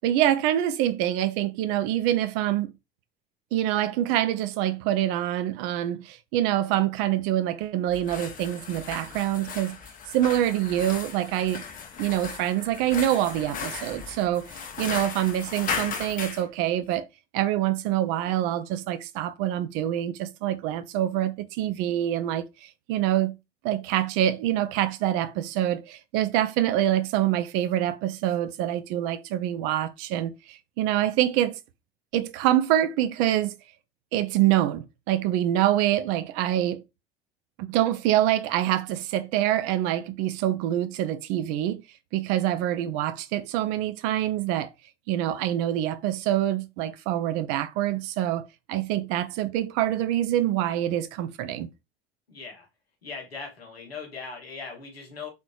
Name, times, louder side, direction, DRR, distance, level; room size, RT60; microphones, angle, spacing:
voice 1, 0.0-2.7 3.5-9.8 10.1-11.6 12.0-14.5 14.8-17.0 17.3-23.4 23.6-31.6 32.1-33.5 34.1-36.8 37.6-41.8 42.1-44.7 45.1-51.7, right 12 dB, 45° right, 0.4 m, -25 dB
sound 1, 7.9-16.4, left 6 dB, 30° left, 0.6 m, -36 dB
voice 2, 52.3-52.7 53.0-55.3, left 4 dB, 85° left, 1.0 m, -39 dB
3.2 x 2.9 x 2.3 m
figure-of-eight pair, 70°, 30 cm